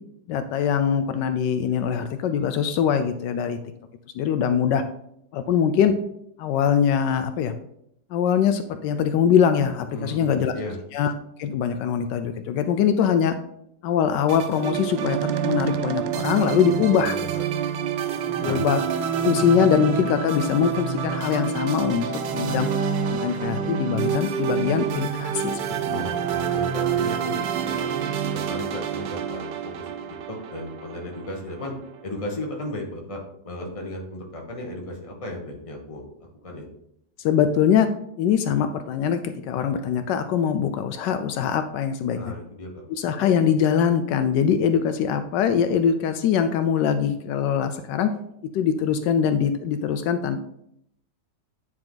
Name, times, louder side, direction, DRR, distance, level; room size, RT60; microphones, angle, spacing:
voice 1, 0.3-3.6 4.1-4.8 5.3-5.9 6.4-7.5 8.1-10.5 10.9-11.1 11.4-13.3 13.8-17.2 18.4-18.8 19.2-22.0 22.3-22.7 23.1-25.6 25.9-26.0 26.3-26.4 37.2-37.9 38.2-42.2 43.0-48.1 48.5-50.4, left 8 dB, 80° left, 9 dB, 1.2 m, -22 dB
voice 2, 9.9-10.8 16.7-17.4 18.4-18.6 25.9-27.9 28.3-31.7 32.0-36.7 42.1-42.9, left 1 dB, 20° left, 0 dB, 1.3 m, -35 dB
sound 1, 14.3-31.7, right 7 dB, 80° right, 1.3 m, -27 dB
9.5 x 4.6 x 3.8 m, 0.75 s
omnidirectional pair, 1.9 m